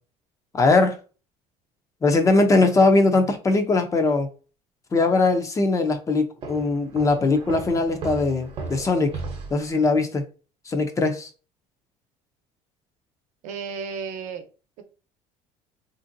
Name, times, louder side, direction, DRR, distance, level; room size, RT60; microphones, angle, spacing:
voice 1, 0.5-1.0 2.0-4.3 4.9-9.1 9.5-10.2 10.7-11.3, left 3 dB, 25° left, 0.5 m, -20 dB
Walk footsteps, 6.4-9.7, right 4 dB, 40° right, 0.8 m, -36 dB
voice 2, 13.4-14.4 14.8-14.9, right 6 dB, 65° right, 0.8 m, -33 dB
3.4 x 2.6 x 2.6 m
cardioid pair, 130°, 14 cm